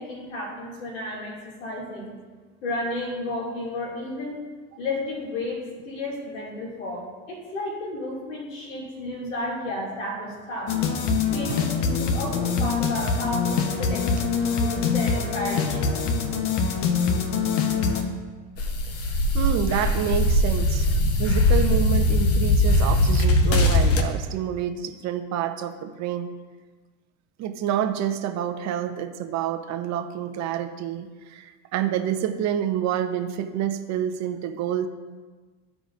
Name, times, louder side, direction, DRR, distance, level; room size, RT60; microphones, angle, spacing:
voice 1, 0.0-2.1 2.6-4.4 4.8-10.8 11.3-16.1, left 1 dB, 85° left, -3 dB, 2.4 m, -32 dB
sound 1, 10.7-18.0, left 5 dB, 65° left, 1.0 m, -24 dB
sound 2, 18.6-24.0, left 1 dB, 40° left, 0.9 m, -20 dB
voice 2, 19.3-26.3 27.4-34.9, right 10 dB, 45° right, 8 dB, 0.8 m, -28 dB
13.5 x 5.0 x 2.5 m, 1.4 s
hypercardioid pair, 95°, 38 cm